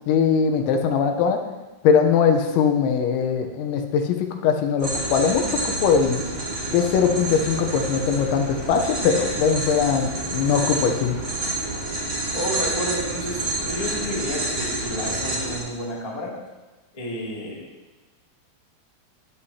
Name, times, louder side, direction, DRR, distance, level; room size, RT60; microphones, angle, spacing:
voice 1, 0.1-1.4 1.8-6.2 6.7-11.2, left 6 dB, 80° left, 5 dB, 3.2 m, -21 dB
sound 1, 4.8-15.6, right 2 dB, 30° right, 4.4 m, -28 dB
voice 2, 12.3-16.3 16.9-17.6, equal, 15° left, -5 dB, 1.5 m, -31 dB
16.0 x 9.8 x 2.9 m, 1.2 s
omnidirectional pair, 5.3 m